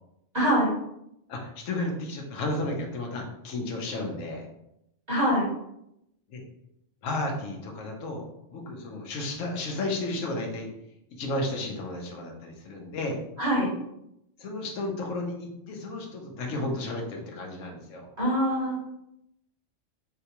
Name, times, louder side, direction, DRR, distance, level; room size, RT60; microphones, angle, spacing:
voice 1, 0.3-0.7 5.1-5.5 13.4-13.7 18.2-18.8, equal, 35° right, -8 dB, 1.6 m, -24 dB
voice 2, 1.3-4.4 6.3-6.4 7.0-10.7 11.1-13.2 14.4-18.1, left 2 dB, 80° left, 1 dB, 1.1 m, -33 dB
3.9 x 2.3 x 2.9 m, 0.82 s
omnidirectional pair, 1.3 m